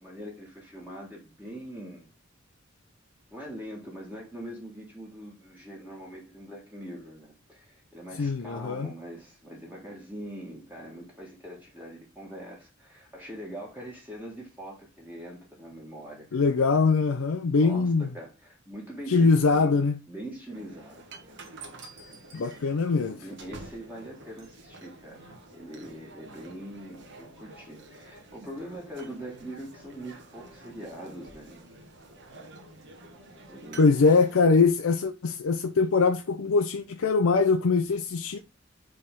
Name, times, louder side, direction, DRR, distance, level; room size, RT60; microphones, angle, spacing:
voice 1, 0.0-2.1 3.3-16.4 17.6-19.7 20.1-21.0 22.4-22.7 23.0-31.6 33.5-33.9, equal, 10° right, 1.6 m, -42 dB
voice 2, 8.2-8.9 16.3-18.1 19.1-20.0 22.3-23.2 33.8-38.4, left 4 dB, 85° left, 0.5 m, -22 dB
sound 1, 20.5-34.4, right 2 dB, 60° right, 1.3 m, -48 dB
5.4 x 3.5 x 5.2 m
head